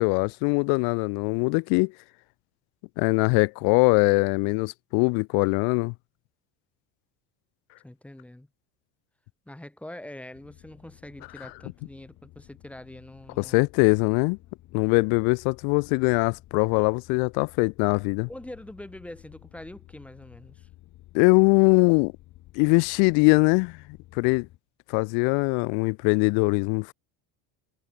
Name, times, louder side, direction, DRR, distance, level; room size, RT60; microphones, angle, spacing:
voice 1, 0.0-1.9 3.0-5.9 13.4-14.4 14.7-18.3 21.1-22.1 22.6-23.8 24.2-24.5 24.9-26.9, left 35 dB, 85° left, 0.5 m, -22 dB
voice 2, 7.8-8.5 9.5-13.7 18.3-20.7, left 1 dB, 5° left, 2.8 m, -44 dB
sound 1, 10.3-24.6, left 16 dB, 50° left, 7.6 m, -53 dB
cardioid pair, 170°, 37 cm